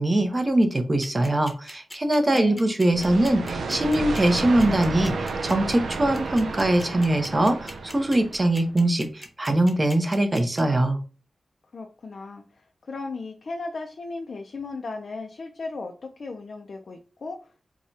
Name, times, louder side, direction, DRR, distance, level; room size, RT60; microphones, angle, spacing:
voice 1, 0.0-11.0, right 1 dB, 25° right, 6 dB, 0.7 m, -22 dB
sound 1, 1.0-10.6, left 1 dB, 10° left, 0.9 m, -40 dB
voice 2, 2.3-2.7 11.7-17.7, left 3 dB, 60° left, 3 dB, 0.4 m, -36 dB
sound 2, 2.9-8.6, right 3 dB, 85° right, 0.4 m, -31 dB
4.8 x 2.2 x 2.7 m, 0.36 s
wide cardioid pair, 100°, 0 cm